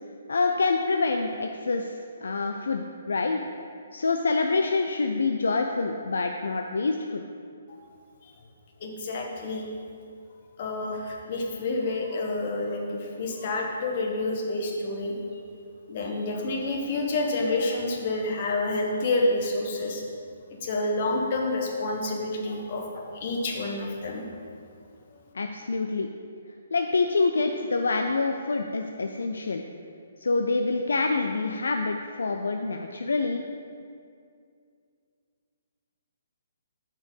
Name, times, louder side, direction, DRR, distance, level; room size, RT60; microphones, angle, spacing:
voice 1, 0.3-3.4 3.9-7.2 25.3-26.1 26.7-29.6 30.2-33.4, left 3 dB, 75° left, 4 dB, 0.3 m, -26 dB
voice 2, 8.8-9.7 10.6-15.1 15.9-20.0 20.6-24.2, left 2 dB, 45° left, 0 dB, 1.1 m, -28 dB
5.8 x 4.5 x 5.4 m, 2.3 s
figure-of-eight pair, 140°, 0 cm